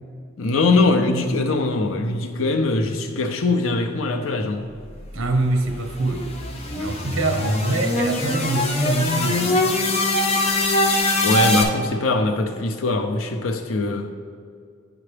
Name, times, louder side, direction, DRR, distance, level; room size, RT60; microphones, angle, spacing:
voice 1, 0.4-4.7 11.2-14.1, left 3 dB, 85° left, 0.6 m, -22 dB
voice 2, 5.1-6.3 6.7-9.7, right 2 dB, 70° right, 0.8 m, -24 dB
sound 1, 5.2-11.6, left 1 dB, 30° left, 0.5 m, -22 dB
9.5 x 4.9 x 3.3 m
head